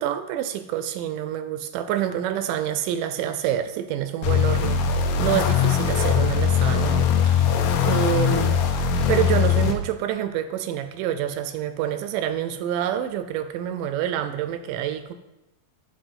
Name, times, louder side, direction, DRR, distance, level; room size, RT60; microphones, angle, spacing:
voice 1, 0.0-4.8 5.2-7.5 7.8-8.7 9.1-15.1, right 10 dB, 80° right, 10 dB, 2.0 m, -27 dB
sound 1, 4.2-9.7, left 7 dB, 75° left, 2.3 m, -21 dB
9.0 x 6.0 x 5.3 m, 0.98 s
omnidirectional pair, 4.1 m